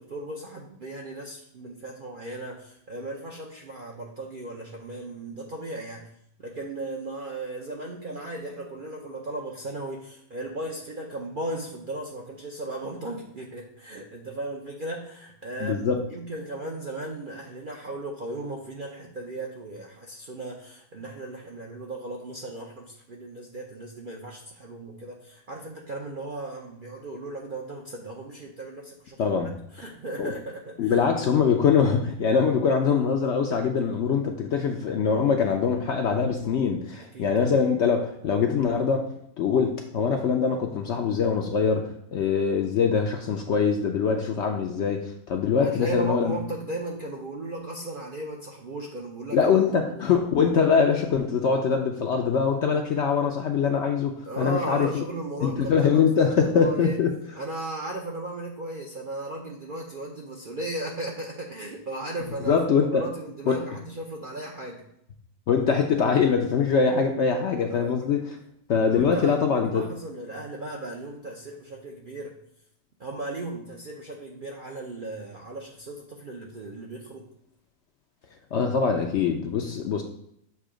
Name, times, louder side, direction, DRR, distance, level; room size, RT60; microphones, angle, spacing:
voice 1, 0.0-6.1 6.4-30.9 37.1-37.5 45.6-49.5 49.8-50.0 54.3-57.0 57.3-64.8 67.7-68.2 68.9-72.4 73.0-77.3, right 2 dB, 55° right, -1 dB, 0.6 m, -36 dB
voice 2, 15.6-16.0 29.2-29.6 30.2-30.3 30.8-46.4 49.3-55.0 55.4-57.1 62.5-63.0 63.5-63.6 65.5-68.4 68.7-69.8 78.5-80.0, left 6 dB, 65° left, 3 dB, 0.7 m, -23 dB
6.9 x 2.7 x 4.9 m, 0.74 s
omnidirectional pair, 1.6 m